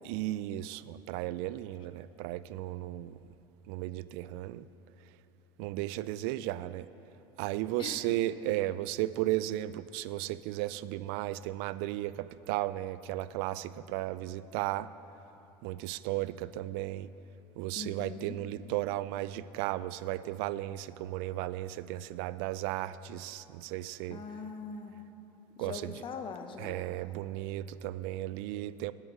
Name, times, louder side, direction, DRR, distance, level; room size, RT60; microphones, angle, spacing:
voice 1, 0.0-3.2 3.7-4.6 5.6-6.9 7.4-14.9 15.6-17.1 17.6-24.2 25.6-25.9 26.6-28.9, right 15 dB, 70° right, 17 dB, 0.4 m, -35 dB
voice 2, 17.8-18.4 24.1-24.9 25.6-26.8, left 5 dB, 40° left, 6 dB, 1.1 m, -41 dB
9.8 x 8.1 x 7.9 m, 2.9 s
supercardioid pair, 95°, 13 cm